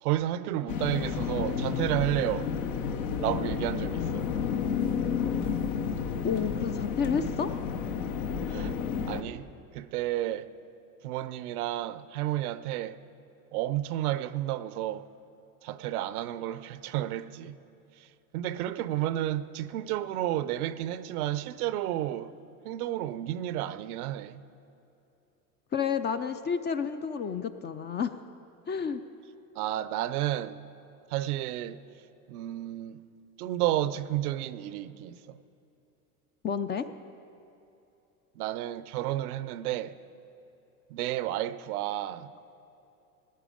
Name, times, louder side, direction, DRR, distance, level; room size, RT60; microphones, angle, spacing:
voice 1, 0.0-2.5 3.2-4.3 8.5-8.8 9.1-9.5 9.7-10.5 11.0-13.0 13.5-15.1 15.6-17.6 18.0-22.3 22.6-24.4 29.6-30.6 31.1-31.8 32.3-33.0 33.4-35.4 38.4-40.0 40.9-42.3, right 13 dB, 75° right, 0.7 m, -31 dB
sound 1, 0.7-9.2, left 7 dB, 70° left, 1.1 m, -31 dB
voice 2, 6.2-7.5 25.7-28.1 28.7-29.0 36.4-36.9, left 6 dB, 25° left, 0.4 m, -30 dB
18.0 x 9.7 x 5.0 m
hypercardioid pair, 95°, 45 cm